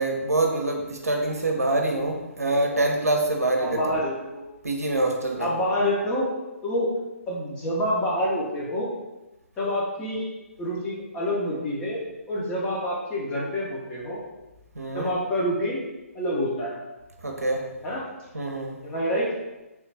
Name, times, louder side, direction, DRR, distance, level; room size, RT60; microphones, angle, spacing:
voice 1, 0.0-4.0 4.6-5.5 14.7-15.1 17.2-17.7 18.3-18.8, right 2 dB, 85° right, 2 dB, 0.6 m, -25 dB
voice 2, 3.6-4.4 5.4-6.3 6.6-6.9 7.3-8.9 9.6-10.3 10.6-12.0 12.3-14.2 14.9-15.8 16.1-16.8 17.8-18.0 18.8-19.3, equal, 15° left, -5 dB, 0.7 m, -27 dB
3.1 x 2.3 x 3.3 m, 1.1 s
figure-of-eight pair, 140°, 8 cm